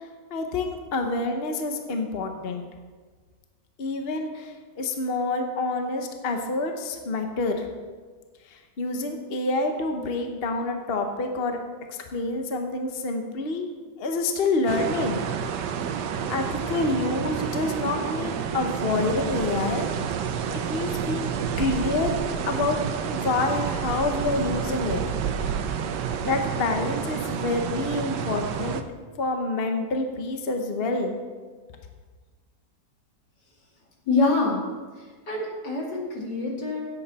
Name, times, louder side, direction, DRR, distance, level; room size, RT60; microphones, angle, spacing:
voice 1, 0.3-2.6 3.8-7.6 8.5-11.6 11.9-13.7 14.0-15.2 16.3-19.9 20.5-21.3 21.6-22.1 22.5-22.8 23.1-25.0 26.2-28.8 29.2-31.2, left 3 dB, 40° left, 4 dB, 1.1 m, -27 dB
sound 1, 14.7-28.8, right 7 dB, 80° right, 1.4 m, -29 dB
voice 2, 34.1-34.6 35.0-36.8, left 3 dB, 75° left, -2 dB, 3.0 m, -25 dB
16.5 x 8.2 x 4.2 m, 1.4 s
omnidirectional pair, 1.9 m